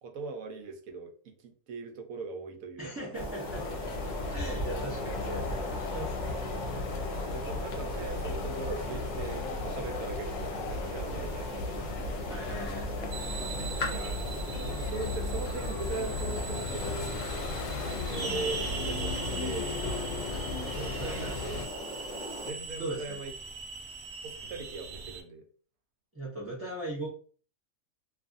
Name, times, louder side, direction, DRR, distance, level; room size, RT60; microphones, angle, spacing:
voice 1, 0.0-3.3 7.3-12.1 13.9-14.3 14.5-17.1 17.8-19.7 20.7-21.6 22.4-23.3 24.2-25.4, right 3 dB, 80° right, 5 dB, 1.1 m, -40 dB
voice 2, 2.8-3.8 4.3-6.2 12.3-13.1 21.0-21.5 22.8-23.2 26.1-27.1, right 1 dB, 20° right, -6 dB, 0.3 m, -39 dB
sound 1, 3.1-22.5, left 1 dB, 50° left, 0.6 m, -39 dB
sound 2, 3.5-21.7, left 4 dB, 75° left, 0.9 m, -36 dB
sound 3, 13.1-25.2, right 4 dB, 65° right, 0.7 m, -40 dB
2.6 x 2.4 x 2.5 m, 0.41 s
omnidirectional pair, 1.4 m